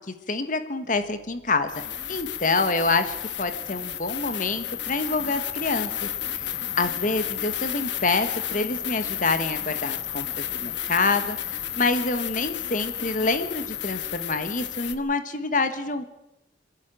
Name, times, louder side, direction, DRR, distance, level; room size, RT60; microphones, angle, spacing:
voice 1, 0.1-6.1 6.3-6.5 6.8-16.0, left 3 dB, 45° left, 9 dB, 1.3 m, -27 dB
sound 1, 1.0-1.1 1.7-14.9, left 10 dB, 70° left, 1.2 m, -32 dB
27.0 x 11.0 x 9.0 m, 0.90 s
head